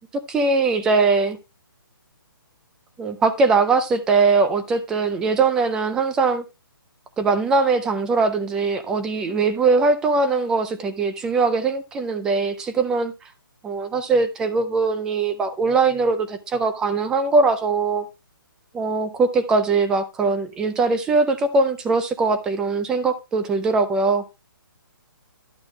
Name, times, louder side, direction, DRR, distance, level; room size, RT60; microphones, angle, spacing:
voice 1, 0.1-1.4 3.0-6.4 7.2-13.1 13.6-18.0 18.7-24.2, right 4 dB, 5° right, 0.4 m, -21 dB
11.5 x 6.0 x 3.3 m
hypercardioid pair, 165°, 12 cm